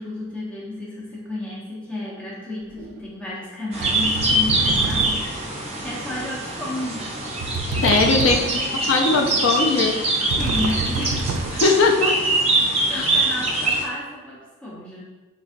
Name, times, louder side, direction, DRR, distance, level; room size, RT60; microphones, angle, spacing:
voice 1, 0.0-7.1 8.2-8.7 10.4-11.3 12.9-15.0, left 1 dB, 5° left, -8 dB, 0.7 m, -32 dB
pound door, 2.8-3.0 3.8-5.5 7.4-8.7 10.3-11.9, right 3 dB, 85° right, 0.3 m, -28 dB
sound 1, 3.7-13.8, right 2 dB, 30° right, 0.6 m, -24 dB
voice 2, 7.8-8.6 8.9-10.0 11.5-12.3 12.9-13.1, left 3 dB, 70° left, 2 dB, 0.4 m, -19 dB
3.9 x 3.3 x 2.6 m, 1.2 s
head